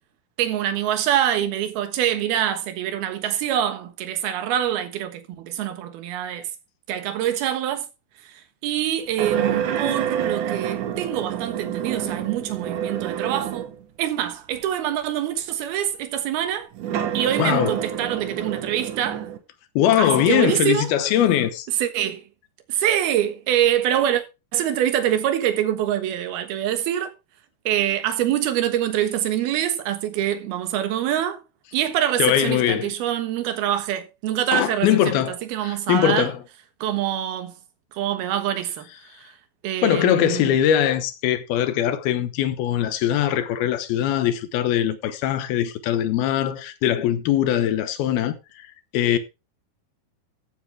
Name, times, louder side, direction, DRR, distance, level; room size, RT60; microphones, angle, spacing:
voice 1, 0.4-6.5 6.9-7.9 8.3-8.4 8.6-13.7 14.0-16.7 17.1-19.3 20.0-20.9 21.8-22.2 22.7-24.2 24.5-27.1 27.7-31.4 31.7-35.1 35.5-36.3 36.8-37.5 37.9-38.9 39.2-39.3 39.6-40.6, right 11 dB, 80° right, 3.3 m, -25 dB
sound 1, 9.2-13.8 14.5-14.6 16.7-19.4, right 9 dB, 65° right, 2.5 m, -28 dB
voice 2, 17.4-17.8 19.8-21.7 32.2-32.9 34.5-35.4 35.6-36.4 39.8-48.7 48.9-49.2, left 11 dB, 80° left, 2.9 m, -21 dB
14.5 x 8.4 x 3.4 m
omnidirectional pair, 4.4 m